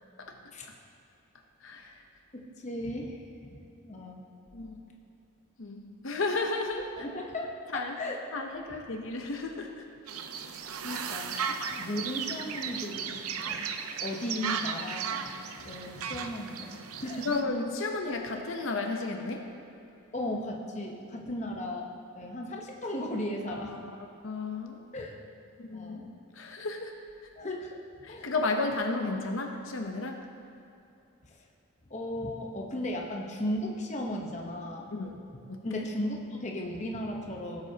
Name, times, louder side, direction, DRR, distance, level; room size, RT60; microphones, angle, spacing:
voice 1, 1.6-2.0 4.5-4.8 5.6-7.1 7.7-7.9 8.3-9.8 10.9-11.0 17.2-19.5 23.5-23.9 24.2-24.8 25.6-26.9 28.0-30.2 34.9-35.2 35.5-35.9, left 3 dB, 65° left, 3 dB, 0.8 m, -33 dB
voice 2, 2.3-4.3 7.0-7.5 8.0-8.2 10.8-13.7 14.0-17.3 20.1-23.8 24.9-25.2 25.7-26.1 27.4-27.8 28.1-28.3 31.2-31.4 31.9-35.0 35.6-37.6, left 1 dB, 35° left, 0 dB, 0.9 m, -36 dB
sound 1, 10.1-17.4, right 6 dB, 90° right, 0.6 m, -36 dB
17.0 x 7.8 x 2.8 m, 2.8 s
head